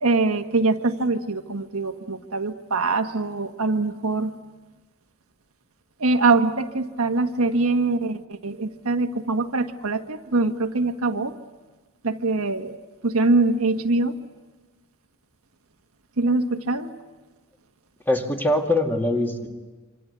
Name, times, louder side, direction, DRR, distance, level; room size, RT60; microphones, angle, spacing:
voice 1, 0.0-4.3 6.0-11.3 12.0-12.7 13.0-14.1 16.2-16.9, right 3 dB, 80° right, 6 dB, 1.5 m, -23 dB
voice 2, 18.1-19.5, left 1 dB, 10° left, 3 dB, 2.3 m, -22 dB
26.5 x 25.5 x 8.3 m, 1.2 s
head